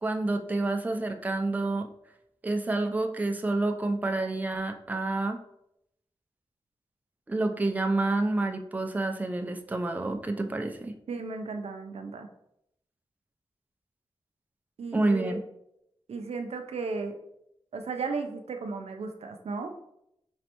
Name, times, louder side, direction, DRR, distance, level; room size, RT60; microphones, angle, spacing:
voice 1, 0.0-1.9 2.4-5.4 7.3-10.9 14.9-15.4, right 2 dB, 15° right, 4 dB, 0.4 m, -28 dB
voice 2, 11.1-12.3 14.8-15.4 16.1-17.2 17.7-19.7, right 4 dB, 85° right, 6 dB, 0.5 m, -35 dB
5.2 x 3.2 x 2.9 m, 0.78 s
wide cardioid pair, 105°, 10 cm